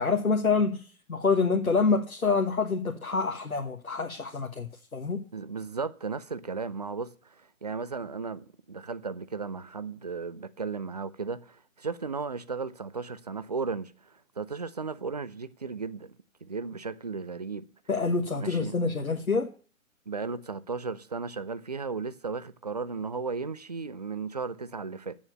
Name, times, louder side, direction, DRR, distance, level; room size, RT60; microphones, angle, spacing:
voice 1, 0.0-5.2 17.9-19.5, left 4 dB, 80° left, 1.4 m, -27 dB
voice 2, 5.3-17.7 18.4-18.7 20.1-25.2, right 4 dB, 30° right, 0.5 m, -35 dB
8.9 x 7.1 x 8.8 m
figure-of-eight pair, 135°, 41 cm